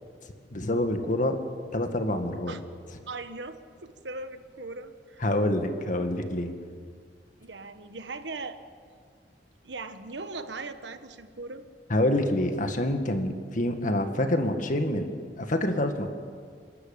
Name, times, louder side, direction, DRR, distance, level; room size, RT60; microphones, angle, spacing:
voice 1, 0.5-1.4 1.7-2.6 5.2-6.5 11.9-15.1 15.4-16.1, left 1 dB, 50° left, 6 dB, 1.8 m, -26 dB
voice 2, 3.1-5.3 7.4-8.6 9.6-11.6, right 3 dB, 90° right, 9 dB, 1.3 m, -39 dB
27.5 x 13.0 x 8.8 m, 2.1 s
head